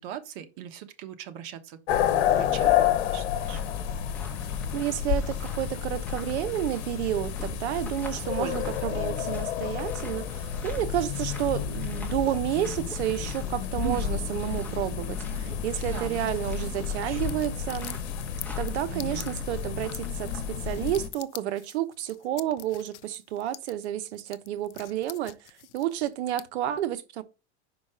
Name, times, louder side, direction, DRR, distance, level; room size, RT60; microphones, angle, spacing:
voice 1, 0.0-3.6 8.1-9.4 13.8-14.2 15.9-16.3 17.0-17.4 18.9-19.3, right 10 dB, 55° right, 1.3 m, -40 dB
sound 1, 1.9-21.1, left 9 dB, 65° left, 1.3 m, -30 dB
sound 2, 3.2-20.9, left 1 dB, 5° left, 1.4 m, -48 dB
voice 2, 4.7-18.0 18.6-25.4 25.7-27.2, right 12 dB, 70° right, 1.0 m, -30 dB
sound 3, 17.0-26.4, left 14 dB, 90° left, 0.7 m, -45 dB
5.6 x 5.1 x 5.0 m
supercardioid pair, 140°, 34 cm